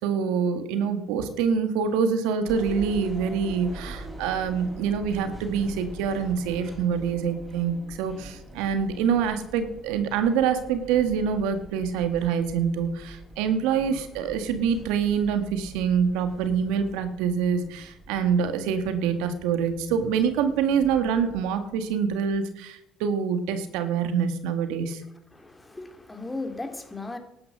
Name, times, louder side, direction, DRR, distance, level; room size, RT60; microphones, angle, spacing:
voice 1, 0.0-25.0, right 7 dB, 80° right, 9 dB, 1.6 m, -25 dB
sound 1, 2.5-22.4, equal, 10° right, 5.8 m, -44 dB
voice 2, 25.3-27.2, left 2 dB, 15° left, 6 dB, 2.7 m, -36 dB
12.0 x 9.6 x 6.6 m, 0.86 s
supercardioid pair, 75°, 0 cm